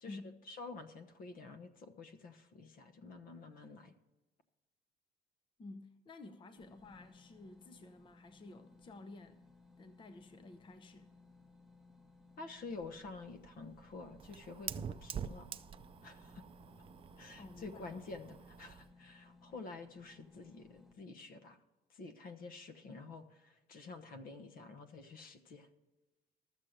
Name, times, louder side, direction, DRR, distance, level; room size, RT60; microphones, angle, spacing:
voice 1, 0.5-3.9 12.4-15.5 16.0-16.4 17.2-21.6 21.9-25.7, left 3 dB, 55° left, 1.1 m, -49 dB
voice 2, 5.6-9.4 9.8-11.1 17.3-18.1, left 2 dB, 30° left, 0.7 m, -52 dB
sound 1, 6.6-20.9, left 3 dB, ahead, 0.9 m, -62 dB
Fire, 12.7-18.9, right 7 dB, 30° right, 0.4 m, -47 dB
12.5 x 7.5 x 6.5 m
cardioid pair, 110°, 17 cm